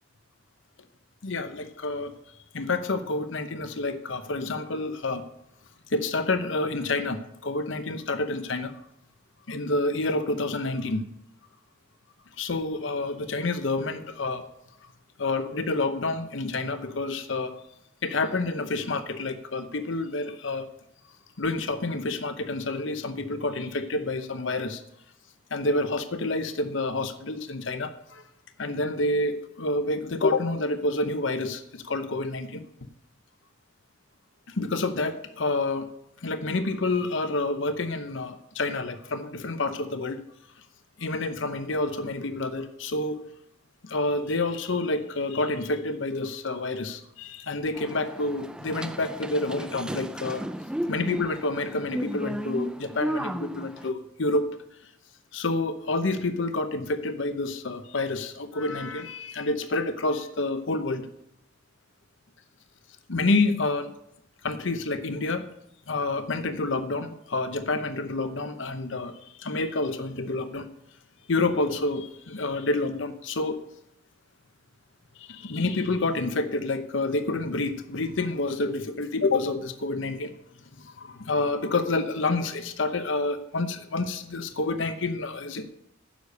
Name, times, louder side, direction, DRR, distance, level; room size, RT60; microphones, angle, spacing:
voice 1, 1.2-2.1 2.5-5.2 5.9-8.7 9.5-11.0 12.4-14.4 15.2-17.5 18.0-20.7 21.4-24.8 25.5-28.2 28.6-32.6 34.5-35.9 36.2-40.2 41.0-43.2 43.8-50.4 50.9-54.5 55.3-61.0 63.1-63.9 64.4-65.5 65.9-70.7 71.3-73.6 75.2-80.3 80.8-85.6, left 2 dB, 70° left, 9 dB, 0.9 m, -28 dB
sound 1, 47.7-53.9, equal, 5° right, 0.3 m, -34 dB
10.0 x 6.7 x 6.6 m, 0.78 s
head